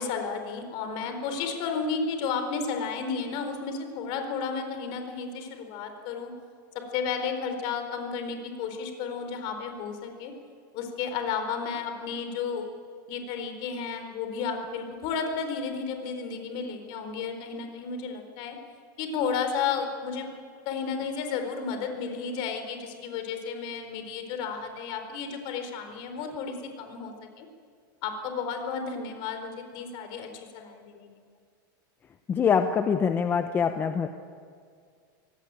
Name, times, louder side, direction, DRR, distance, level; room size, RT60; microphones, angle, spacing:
voice 1, 0.0-6.3 6.9-10.3 10.7-12.7 13.1-18.6 19.0-20.3 20.7-27.5 28.0-30.3 30.5-31.1, left 5 dB, 45° left, 6 dB, 4.3 m, -32 dB
voice 2, 32.3-34.1, left 6 dB, 20° left, 7 dB, 0.9 m, -24 dB
26.0 x 18.0 x 9.0 m, 2.1 s
supercardioid pair, 150°, 11 cm